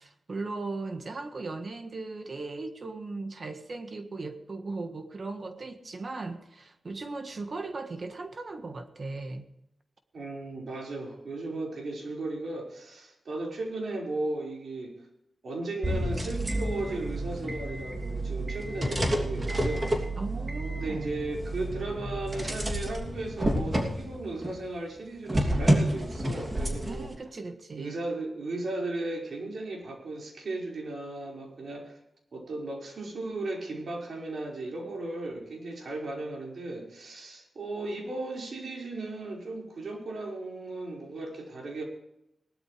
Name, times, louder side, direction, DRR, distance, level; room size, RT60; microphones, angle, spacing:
voice 1, 0.0-9.4 20.2-21.1 26.9-27.9, right 3 dB, 50° right, 7 dB, 1.5 m, -37 dB
voice 2, 10.1-14.9 15.4-19.9 20.7-27.1 27.7-32.0 32.3-41.8, right 2 dB, 70° right, -1 dB, 5.2 m, -36 dB
sound 1, 15.8-24.6 25.3-27.1, right 1 dB, 25° right, 2.9 m, -30 dB
18.5 x 12.5 x 3.4 m, 0.82 s
cardioid pair, 75°, 0 cm